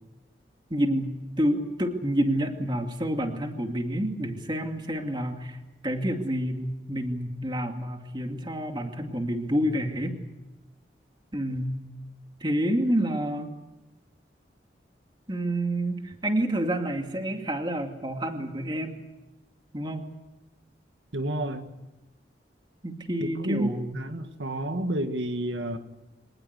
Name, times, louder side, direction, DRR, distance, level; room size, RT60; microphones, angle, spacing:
voice 1, 0.7-5.6 5.8-10.2 11.3-11.8 12.4-13.5 15.3-19.0 19.7-20.0 22.8-23.9, right 1 dB, 25° right, 4 dB, 2.4 m, -28 dB
voice 2, 21.1-21.7 23.2-25.8, right 1 dB, 80° right, 7 dB, 1.9 m, -30 dB
25.0 x 19.5 x 8.2 m, 1.1 s
head